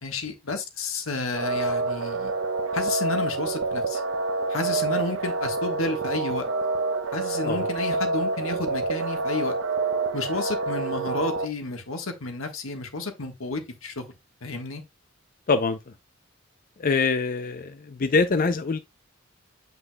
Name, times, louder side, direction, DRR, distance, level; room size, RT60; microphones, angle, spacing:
voice 1, 0.0-2.3 2.7-4.0 4.5-6.5 7.1-9.6 10.1-14.0 14.4-14.8, left 3 dB, 85° left, 1.4 m, -31 dB
sound 1, 1.3-11.4, right 3 dB, 65° right, 0.8 m, -27 dB
voice 2, 15.5-15.9 16.8-18.8, left 4 dB, 45° left, 0.5 m, -24 dB
7.9 x 5.6 x 2.2 m
head